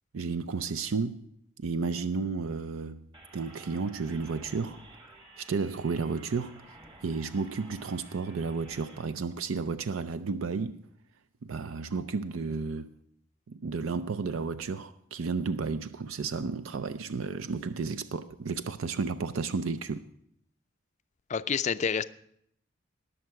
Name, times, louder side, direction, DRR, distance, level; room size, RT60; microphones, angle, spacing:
voice 1, 0.1-1.3 1.6-3.1 3.3-4.8 5.4-6.6 7.0-10.8 11.4-12.9 13.5-20.1, right 4 dB, 90° right, 0.5 m, -32 dB
sound 1, 3.1-9.0, right 2 dB, 25° right, 1.2 m, -52 dB
voice 2, 21.3-22.0, left 6 dB, 35° left, 0.4 m, -28 dB
19.0 x 6.6 x 4.6 m
head